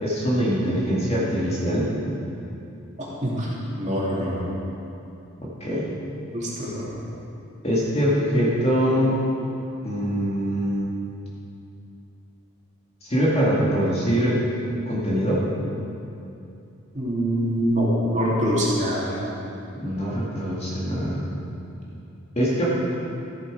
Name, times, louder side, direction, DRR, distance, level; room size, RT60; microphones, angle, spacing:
voice 1, 0.0-1.9 5.4-5.9 7.6-9.2 9.8-10.9 13.0-14.4 14.9-15.4 19.8-21.2 22.4-22.7, equal, 30° left, -6 dB, 2.0 m, -23 dB
voice 2, 3.8-4.5 6.3-6.9 16.9-19.2, equal, 35° right, -7 dB, 2.6 m, -24 dB
14.0 x 8.0 x 4.9 m, 2.7 s
head